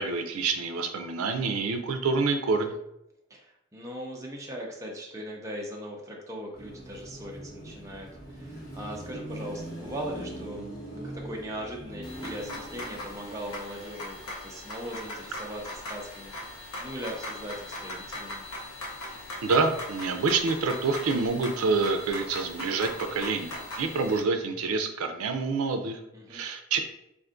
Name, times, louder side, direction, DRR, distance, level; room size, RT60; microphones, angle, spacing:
voice 1, 0.0-2.7 19.4-26.0 26.3-26.8, right 4 dB, 90° right, 6 dB, 0.4 m, -27 dB
voice 2, 3.3-18.4 26.1-26.4, equal, 15° right, -1 dB, 0.5 m, -39 dB
Car passing by / Traffic noise roadway noise / Engine, 6.5-13.9, right 1 dB, 40° left, 1.2 m, -41 dB
sound 1, 12.0-24.2, left 1 dB, 80° left, 0.8 m, -40 dB
2.5 x 2.4 x 3.6 m, 0.80 s
head